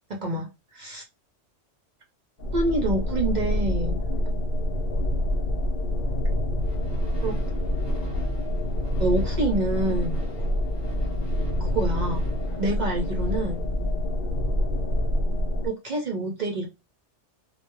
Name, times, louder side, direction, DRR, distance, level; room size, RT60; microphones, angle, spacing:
voice 1, 0.2-1.0 2.5-4.0 7.2-7.4 9.0-10.2 11.6-12.3 12.6-13.6 15.6-16.7, right 2 dB, 55° right, 1 dB, 0.5 m, -27 dB
sound 1, 2.4-15.7, left 1 dB, 55° left, 0.7 m, -26 dB
sound 2, 6.6-14.0, left 1 dB, 25° left, 0.9 m, -41 dB
2.2 x 2.1 x 2.9 m, 0.24 s
omnidirectional pair, 1.2 m